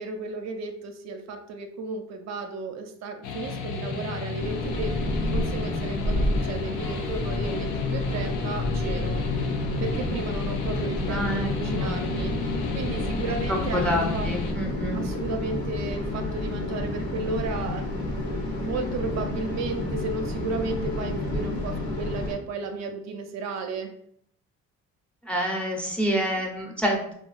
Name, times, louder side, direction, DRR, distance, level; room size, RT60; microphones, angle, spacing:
voice 1, 0.0-9.2 9.8-12.5 12.7-14.3 14.9-23.9, right 3 dB, 65° right, 5 dB, 0.5 m, -34 dB
sound 1, 3.2-14.5, left 4 dB, 90° left, 0.5 m, -33 dB
sound 2, 4.4-22.3, left 1 dB, 70° left, 0.8 m, -30 dB
voice 2, 11.1-11.5 11.8-12.0 13.5-15.0 25.2-27.1, equal, 5° left, -1 dB, 0.5 m, -27 dB
2.7 x 2.3 x 2.3 m, 0.67 s
cardioid pair, 90°, 30 cm